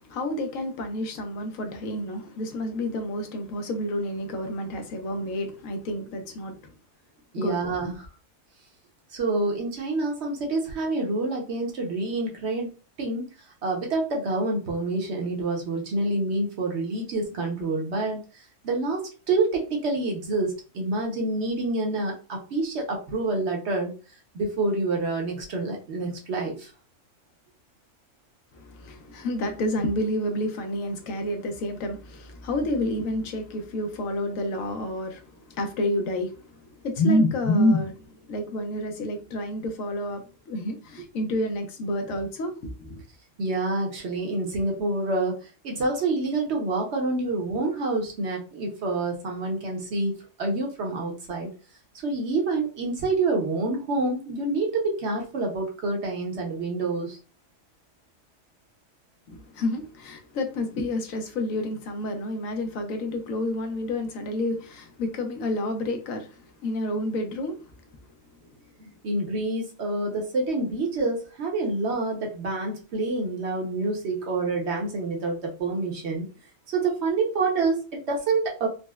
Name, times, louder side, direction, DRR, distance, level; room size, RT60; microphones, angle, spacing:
voice 1, 0.0-6.6 7.4-7.9 28.5-43.0 59.3-67.6, left 1 dB, 80° left, 1.1 m, -29 dB
voice 2, 7.3-8.0 9.1-12.7 13.0-13.2 13.6-23.9 24.3-26.7 43.4-45.4 45.6-51.5 52.0-57.2 68.8-76.3 76.7-78.7, right 3 dB, 60° right, 1.0 m, -27 dB
4.1 x 2.1 x 2.2 m
omnidirectional pair, 1.4 m